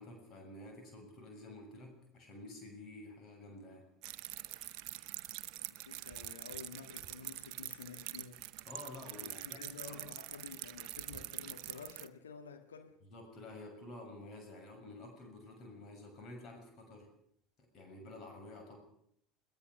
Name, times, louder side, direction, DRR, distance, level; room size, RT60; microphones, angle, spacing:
voice 1, 0.0-3.9 8.6-10.0 13.1-17.1 17.6-18.8, left 2 dB, 40° left, 6.9 m, -50 dB
sound 1, 4.0-12.1, right 15 dB, 50° right, 0.9 m, -45 dB
voice 2, 5.7-8.5 9.2-13.0, left 6 dB, 75° left, 1.7 m, -51 dB
22.0 x 21.5 x 6.4 m
figure-of-eight pair, 70°, 0 cm